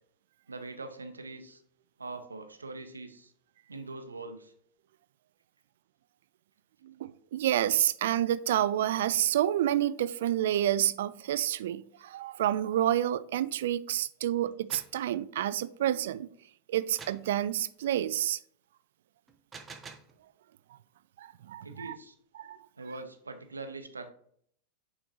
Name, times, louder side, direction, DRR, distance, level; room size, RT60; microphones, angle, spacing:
voice 1, 0.5-1.6 2.0-3.3 3.7-4.5 21.6-22.1 22.8-24.1, right 3 dB, 75° right, 0.8 m, -42 dB
voice 2, 6.8-16.3 16.7-18.4 21.2-22.0 22.4-22.6, right 12 dB, 55° right, 0.3 m, -29 dB
sound 1, 14.5-15.0 17.0-17.3 19.3-20.2, right 5 dB, 20° right, 0.7 m, -47 dB
9.2 x 3.7 x 2.9 m
figure-of-eight pair, 90°, 0 cm